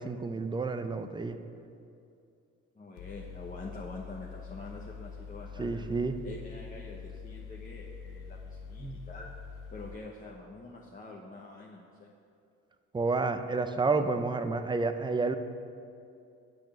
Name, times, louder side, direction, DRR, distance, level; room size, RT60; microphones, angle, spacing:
voice 1, 0.0-1.4 5.6-6.1 8.8-9.1 12.9-15.4, right 3 dB, 15° right, 8 dB, 0.6 m, -30 dB
voice 2, 2.7-9.3 9.7-12.1, left 3 dB, 25° left, -3 dB, 1.0 m, -46 dB
Mechanical fan, 3.0-9.9, left 6 dB, 90° left, 0.6 m, -45 dB
8.4 x 6.4 x 6.8 m, 2.6 s
cardioid pair, 90°, 30 cm